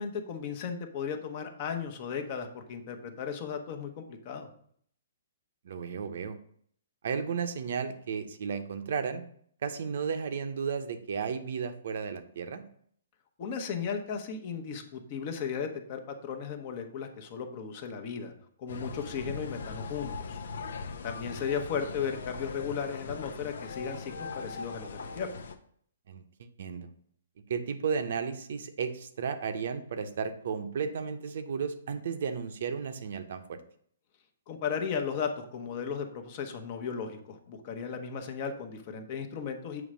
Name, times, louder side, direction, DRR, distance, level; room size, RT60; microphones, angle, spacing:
voice 1, 0.0-4.5 13.4-18.3 18.6-20.4 21.0-25.3 34.5-39.8, left 6 dB, 35° left, 5 dB, 0.9 m, -35 dB
voice 2, 5.6-6.4 7.0-9.2 9.6-12.6 19.1-19.2 26.1-26.9 27.5-33.6, right 6 dB, 55° right, 8 dB, 0.7 m, -34 dB
sound 1, 18.7-25.6, left 4 dB, 75° left, 0.8 m, -40 dB
7.1 x 3.2 x 6.1 m, 0.62 s
hypercardioid pair, 165°, 0 cm